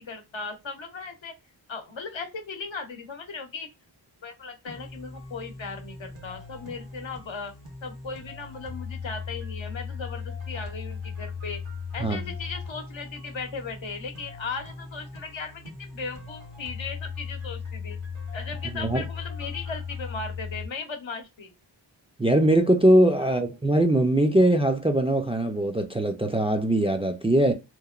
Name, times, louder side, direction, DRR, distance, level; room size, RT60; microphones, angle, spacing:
voice 1, 0.0-1.3 1.7-3.7 4.2-7.5 7.8-11.6 11.9-18.0 18.3-21.5 23.2-23.4, left 4 dB, 80° left, 0.8 m, -37 dB
sound 1, 4.7-20.7, left 5 dB, 75° right, 1.2 m, -38 dB
voice 2, 22.2-27.5, right 1 dB, 15° right, 0.3 m, -21 dB
3.0 x 2.1 x 2.3 m
wide cardioid pair, 85°, 45 cm